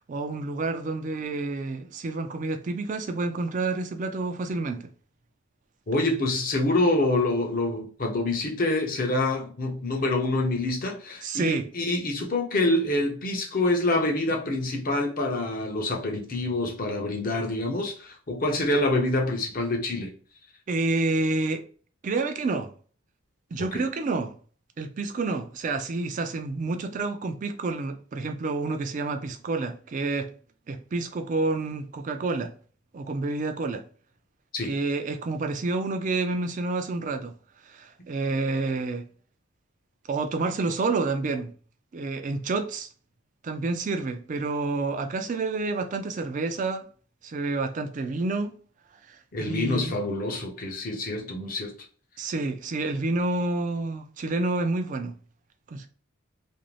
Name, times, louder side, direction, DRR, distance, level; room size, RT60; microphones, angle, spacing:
voice 1, 0.0-4.9 11.2-11.7 20.7-21.6 22.0-22.7 23.5-24.3 24.8-30.3 30.7-32.5 32.9-33.8 34.7-37.3 37.6-39.1 40.1-41.5 41.9-42.9 43.4-46.9 47.2-48.6 49.1-50.0 52.2-55.2 55.7-55.9, right 3 dB, 40° right, 0.3 m, -29 dB
voice 2, 5.9-20.1 23.7-23.8 34.5-34.7 49.3-51.7, left 2 dB, 40° left, 0.6 m, -26 dB
2.5 x 2.0 x 3.0 m
head